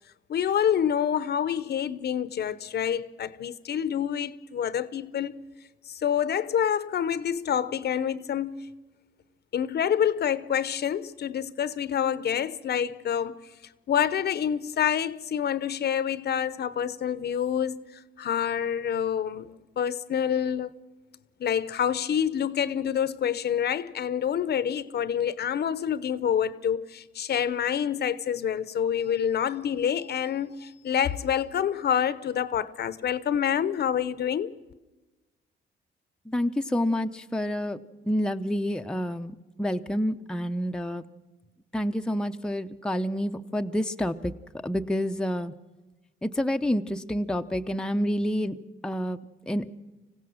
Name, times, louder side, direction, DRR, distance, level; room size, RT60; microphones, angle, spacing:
voice 1, 0.3-5.3 6.0-8.6 9.5-13.4 13.9-17.9 18.2-19.5 19.8-20.7 21.4-34.5, left 9 dB, 55° left, 0.8 m, -27 dB
voice 2, 36.3-37.8 38.1-41.0 41.7-44.3 44.6-45.5 46.2-48.6 48.8-49.2 49.5-49.6, equal, 5° left, 0.6 m, -28 dB
25.5 x 16.0 x 6.4 m
cardioid pair, 90°, 20 cm